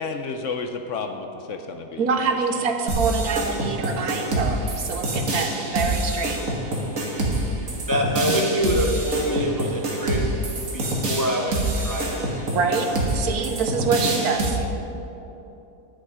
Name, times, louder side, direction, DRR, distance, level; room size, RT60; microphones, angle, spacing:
voice 1, 0.0-2.1, left 4 dB, 65° left, 5 dB, 0.9 m, -31 dB
voice 2, 2.0-6.4 12.5-14.7, right 4 dB, 70° right, 5 dB, 1.3 m, -25 dB
sound 1, 2.9-14.5, right 1 dB, 55° right, 1.9 m, -26 dB
voice 3, 7.1-10.3 10.7-12.3, equal, 25° left, 1 dB, 0.4 m, -26 dB
10.5 x 10.0 x 4.9 m, 2.9 s
omnidirectional pair, 1.7 m